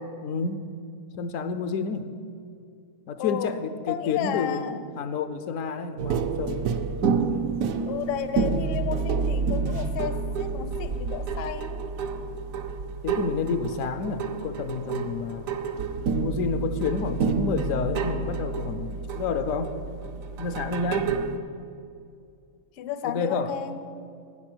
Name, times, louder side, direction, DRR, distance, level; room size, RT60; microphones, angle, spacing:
voice 1, 0.2-0.6 1.1-2.2 3.1-6.7 13.0-15.6 16.1-19.8 20.4-21.1 23.0-23.6, left 5 dB, 75° left, 10 dB, 1.0 m, -29 dB
voice 2, 3.2-3.6 3.9-4.8 7.8-11.9 22.8-23.8, left 9 dB, 55° left, 11 dB, 0.7 m, -32 dB
sound 1, 6.0-21.4, right 5 dB, 80° right, 1.1 m, -29 dB
11.5 x 9.3 x 6.1 m, 2.4 s
omnidirectional pair, 1.4 m